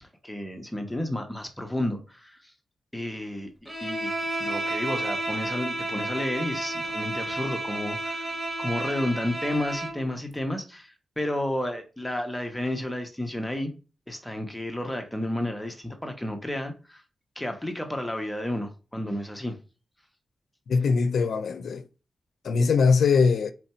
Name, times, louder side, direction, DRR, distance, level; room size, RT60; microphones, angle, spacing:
voice 1, 0.0-2.5 2.9-4.1 4.4-8.2 8.6-13.7 14.1-17.0 17.4-19.6, left 1 dB, 10° left, 1.0 m, -31 dB
Bowed string instrument, 3.7-10.0, right 2 dB, 15° right, 1.6 m, -31 dB
voice 2, 20.7-21.9 22.4-23.5, left 5 dB, 75° left, 0.5 m, -21 dB
4.5 x 2.7 x 4.3 m
cardioid pair, 70°, 0 cm